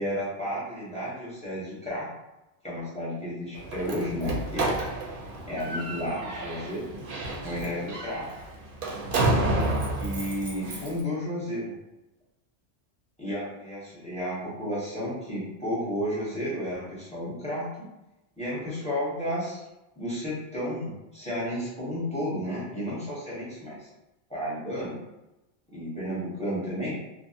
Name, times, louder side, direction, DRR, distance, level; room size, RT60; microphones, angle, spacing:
voice 1, 0.0-2.1 2.6-4.7 5.5-6.8 7.4-8.3 9.9-11.7 13.2-17.7 18.4-19.6 20.0-23.9 24.3-25.0 25.7-27.0, equal, 5° left, -8 dB, 0.7 m, -32 dB
Slam, 3.5-11.0, right 2 dB, 60° right, 0.7 m, -30 dB
2.4 x 2.0 x 2.7 m, 0.97 s
omnidirectional pair, 1.1 m